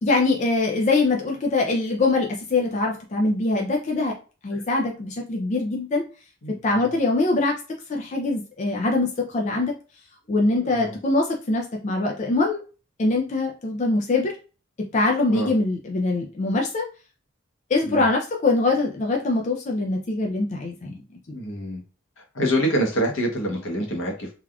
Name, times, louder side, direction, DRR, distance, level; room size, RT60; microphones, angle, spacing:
voice 1, 0.0-4.1 4.4-6.0 6.6-7.6 7.9-9.7 10.3-12.6 13.0-14.3 14.9-16.8 17.7-21.0, left 2 dB, 35° left, 1 dB, 0.4 m, -23 dB
voice 2, 6.4-6.9 10.6-10.9 15.3-15.5 17.8-18.0 21.3-21.8 22.3-24.3, equal, 80° left, 0 dB, 1.0 m, -26 dB
3.3 x 2.4 x 2.3 m, 0.35 s
head